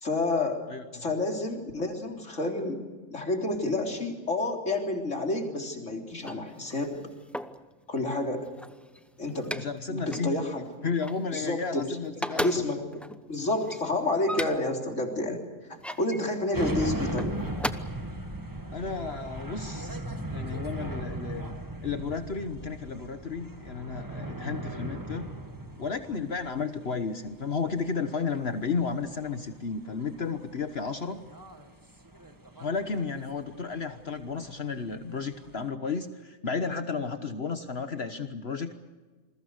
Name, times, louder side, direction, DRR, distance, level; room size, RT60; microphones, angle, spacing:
voice 1, 0.0-0.6 0.9-2.8 3.1-7.1 7.9-8.5 9.2-9.6 9.9-10.9 11.3-12.0 12.3-15.4 16.0-17.3, left 2 dB, 70° left, 2 dB, 4.0 m, -29 dB
sound 1, 6.1-7.7 8.3-9.8 10.1-10.3 10.7-11.8 12.1-14.8 15.5-16.2 17.0-17.7, equal, ahead, 0.7 m, -37 dB
voice 2, 9.5-10.4 10.8-12.7 18.7-20.0 20.3-21.6 21.8-25.3 25.8-31.2 32.6-38.8, left 5 dB, 55° left, 8 dB, 1.4 m, -33 dB
sound 2, 16.5-35.7, right 1 dB, 15° right, 1.7 m, -38 dB
28.5 x 21.5 x 6.6 m, 1.3 s
omnidirectional pair, 1.3 m